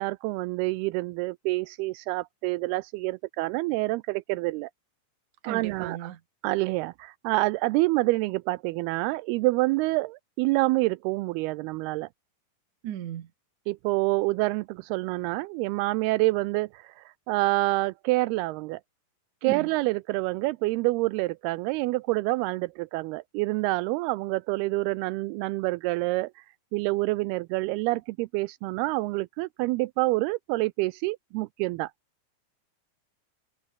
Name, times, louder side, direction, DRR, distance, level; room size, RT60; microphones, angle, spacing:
voice 1, 0.0-4.7 5.5-6.1 6.4-12.1 13.7-18.8 19.4-26.3 26.7-31.9, right 21 dB, 85° right, 2.5 m, -27 dB
voice 2, 5.4-6.2 12.8-13.3 19.4-19.7, right 11 dB, 60° right, 2.7 m, -35 dB
omnidirectional pair, 4.6 m